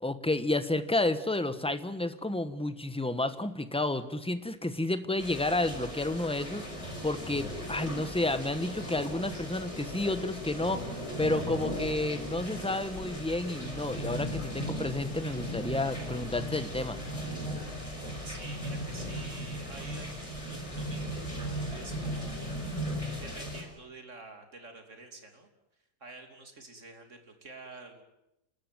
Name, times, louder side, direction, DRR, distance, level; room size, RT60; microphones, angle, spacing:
voice 1, 0.0-6.7 7.0-17.0, left 2 dB, 5° left, 11 dB, 1.0 m, -31 dB
sound 1, 5.2-23.6, equal, 20° left, 5.0 m, -37 dB
voice 2, 18.2-25.5 26.0-28.0, right 3 dB, 50° right, 5 dB, 3.3 m, -49 dB
30.0 x 13.5 x 9.2 m, 0.88 s
omnidirectional pair, 1.6 m